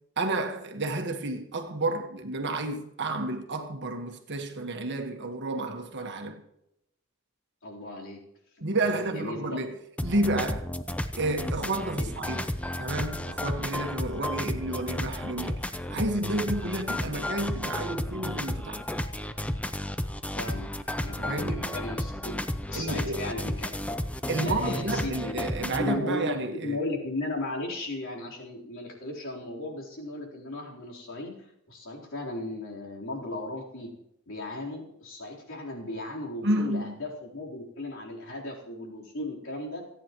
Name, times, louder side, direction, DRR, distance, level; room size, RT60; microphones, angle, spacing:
voice 1, 0.2-6.4 8.6-9.7 10.0-10.7 11.2-12.5 12.8-15.6 15.9-18.8 21.3-21.7 22.7-23.3 24.3-26.8 36.4-37.0, right 2 dB, 55° right, 1.5 m, -31 dB
voice 2, 7.6-8.2 8.8-9.6 11.9-12.1 20.3-20.7 21.0-22.4 22.7-23.7 24.4-25.4 25.8-31.3 31.7-33.9 34.3-39.9, left 2 dB, 65° left, 3.9 m, -36 dB
sound 1, 10.0-26.0, left 1 dB, 5° left, 0.6 m, -32 dB
28.5 x 9.7 x 3.1 m
head